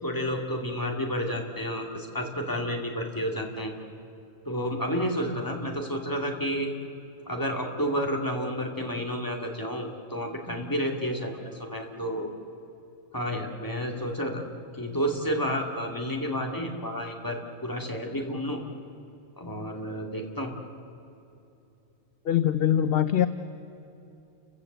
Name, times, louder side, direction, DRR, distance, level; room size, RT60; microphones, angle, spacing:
voice 1, 0.0-3.7 4.5-6.7 7.3-12.3 13.1-14.4 14.7-18.6 19.4-20.5, equal, 15° left, 1 dB, 2.4 m, -30 dB
voice 2, 22.3-23.3, left 10 dB, 55° left, 11 dB, 0.8 m, -22 dB
30.0 x 15.5 x 8.0 m, 2.8 s
omnidirectional pair, 1.4 m